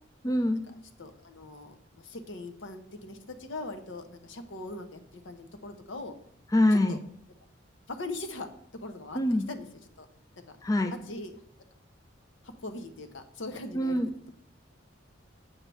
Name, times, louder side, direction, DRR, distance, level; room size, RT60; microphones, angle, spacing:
voice 1, 0.2-0.6 6.5-7.0 9.1-9.4 10.6-10.9 13.7-14.1, left 1 dB, 15° left, 8 dB, 0.3 m, -24 dB
voice 2, 1.0-5.0 5.2-6.2 6.9-7.0 7.9-8.5 8.8-9.6 10.0-10.1 10.4-10.5 10.9-11.3 12.4-14.0, left 2 dB, 70° left, 8 dB, 0.8 m, -40 dB
7.3 x 3.4 x 6.2 m, 0.67 s
head